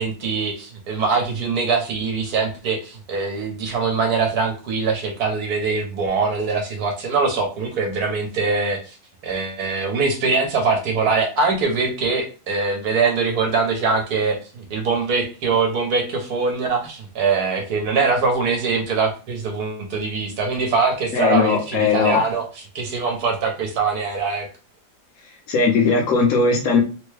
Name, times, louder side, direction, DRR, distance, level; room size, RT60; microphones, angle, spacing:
voice 1, 0.0-9.0 9.2-24.5, right 4 dB, 65° right, 3 dB, 1.2 m, -22 dB
voice 2, 21.1-22.2 25.5-26.8, left 4 dB, 60° left, 1 dB, 1.2 m, -18 dB
3.4 x 2.2 x 3.2 m, 0.34 s
omnidirectional pair, 1.8 m